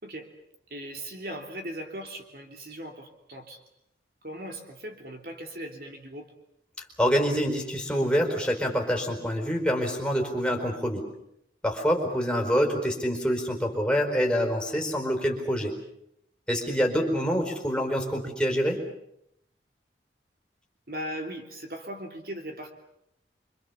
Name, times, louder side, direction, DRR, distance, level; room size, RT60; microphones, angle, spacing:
voice 1, 0.7-3.6 4.2-6.3 17.3-17.4 20.9-22.7, right 1 dB, 55° right, 4 dB, 3.2 m, -38 dB
voice 2, 7.0-11.0 11.6-15.8 16.5-18.8, equal, 5° left, 0 dB, 4.6 m, -26 dB
27.0 x 25.5 x 7.1 m, 0.78 s
head